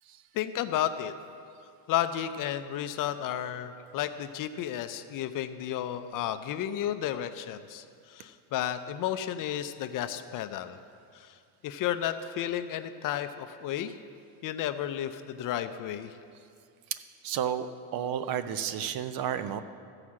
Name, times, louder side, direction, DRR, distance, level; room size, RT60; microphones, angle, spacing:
voice 1, 0.3-1.1 1.9-10.8 11.1-11.3 11.6-13.9 14.4-16.1, left 11 dB, 45° left, 10 dB, 0.5 m, -32 dB
voice 2, 17.2-17.7 17.9-19.6, right 9 dB, 45° right, 12 dB, 0.6 m, -31 dB
14.5 x 4.9 x 7.4 m, 2.4 s
cardioid pair, 125°, 49 cm